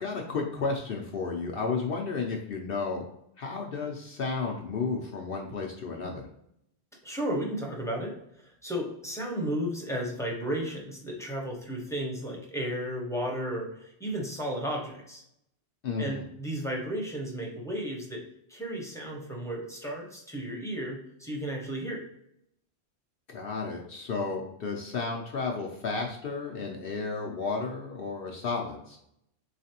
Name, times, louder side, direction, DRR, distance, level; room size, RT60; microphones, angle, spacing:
voice 1, 0.0-3.0 3.4-6.3 15.8-16.2 23.3-29.0, left 4 dB, 60° left, 0 dB, 0.7 m, -32 dB
voice 2, 7.0-15.2 16.0-18.2 18.5-22.0, equal, 5° left, -2 dB, 0.8 m, -34 dB
4.1 x 3.2 x 2.8 m, 0.75 s
omnidirectional pair, 1.2 m